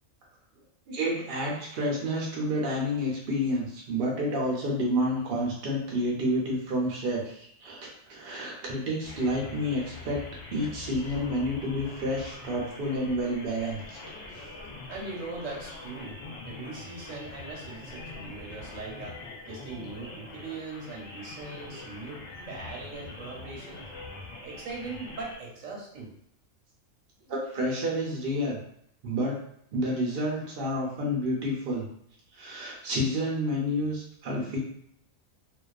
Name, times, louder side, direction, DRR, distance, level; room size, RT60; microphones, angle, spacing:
voice 1, 0.9-10.2 10.5-14.0 14.3-14.4 27.3-28.6 29.0-29.4 29.7-31.9 32.3-34.6, equal, 55° right, -3 dB, 0.7 m, -29 dB
sound 1, 9.0-25.4, left 3 dB, 65° left, 0.8 m, -43 dB
voice 2, 14.9-16.2 16.4-19.2 19.5-22.2 22.5-23.9 24.4-26.1, right 3 dB, 75° right, -1 dB, 1.0 m, -40 dB
2.3 x 2.3 x 2.3 m, 0.70 s
omnidirectional pair, 1.4 m